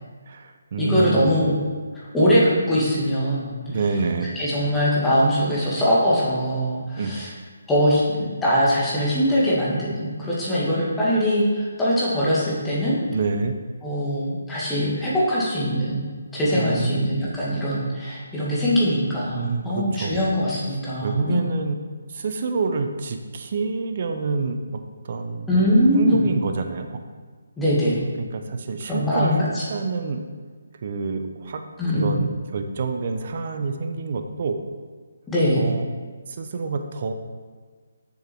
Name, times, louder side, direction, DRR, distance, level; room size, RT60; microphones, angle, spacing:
voice 1, 0.3-1.3 3.7-4.3 7.0-7.1 13.1-13.5 16.5-17.1 19.3-20.2 21.0-21.8 22.1-25.5 25.9-27.0 28.2-30.2 30.8-31.7 31.9-34.6 35.5-35.8 36.4-37.1, right 4 dB, 45° right, 6 dB, 0.8 m, -27 dB
voice 2, 0.8-1.6 1.9-3.6 4.3-7.3 7.7-12.9 13.8-21.4 25.5-26.2 27.6-28.0 28.9-29.6 31.8-32.2 35.3-35.7, equal, 10° left, -9 dB, 2.2 m, -22 dB
6.9 x 6.8 x 4.6 m, 1.5 s
figure-of-eight pair, 150°, 0 cm